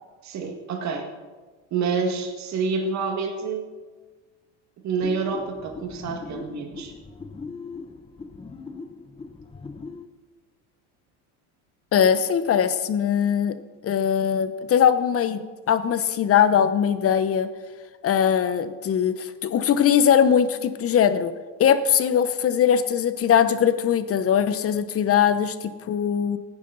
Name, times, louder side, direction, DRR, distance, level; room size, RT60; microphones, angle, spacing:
voice 1, 0.2-1.1 1.7-3.7 4.8-6.9, right 5 dB, 50° right, 3 dB, 1.9 m, -28 dB
sound 1, 5.0-10.1, left 4 dB, 15° left, 0.8 m, -39 dB
voice 2, 11.9-13.6 13.8-17.5 18.0-21.3 21.6-26.4, left 8 dB, 40° left, 12 dB, 1.0 m, -21 dB
16.5 x 9.7 x 4.0 m, 1.4 s
supercardioid pair, 100°, 37 cm